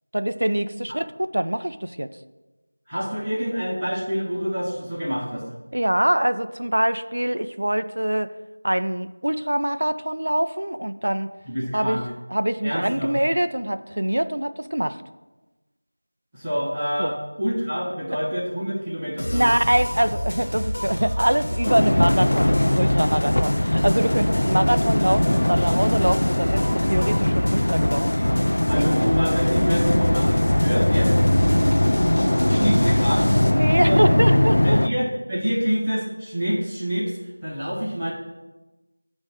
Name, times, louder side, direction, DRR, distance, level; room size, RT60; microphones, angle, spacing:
voice 1, 0.1-2.1 5.7-8.3 8.6-11.3 11.7-12.0 12.3-15.0 17.0-17.2 19.3-28.1 28.7-29.2 33.5-34.8, right 1 dB, 85° right, 11 dB, 0.6 m, -24 dB
voice 2, 2.9-5.4 11.4-12.1 12.6-13.1 16.3-19.5 28.7-31.1 32.4-33.3 33.8-34.0 34.6-38.1, equal, 5° right, -15 dB, 1.3 m, -27 dB
sound 1, 19.2-33.5, equal, 80° left, 1.3 m, -29 dB
sound 2, 21.6-34.9, left 1 dB, 65° left, 0.4 m, -20 dB
Trumpet, 23.2-29.8, equal, 20° left, 1.3 m, -45 dB
9.4 x 3.2 x 6.5 m, 1.1 s
figure-of-eight pair, 180°, 0 cm